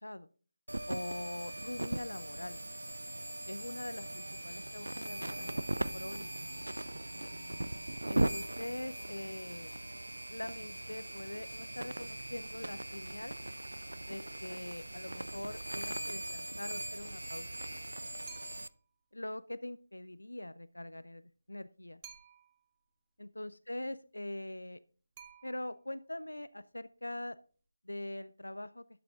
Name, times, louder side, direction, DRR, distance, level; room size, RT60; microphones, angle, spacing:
sound 1, 0.7-18.7, right 1 dB, 75° right, 0.6 m, -39 dB
voice 1, 0.9-2.6 3.5-6.3 8.1-9.7 10.3-13.4 14.1-17.5 19.1-22.0 23.2-24.8 25.4-27.4 27.8-28.8, left 1 dB, 80° left, 16 dB, 0.5 m, -43 dB
sound 2, 18.3-18.9 22.0-22.7 25.2-26.0, right 7 dB, 20° right, 1.3 m, -54 dB
12.0 x 8.0 x 3.6 m, 0.41 s
figure-of-eight pair, 155°, 0 cm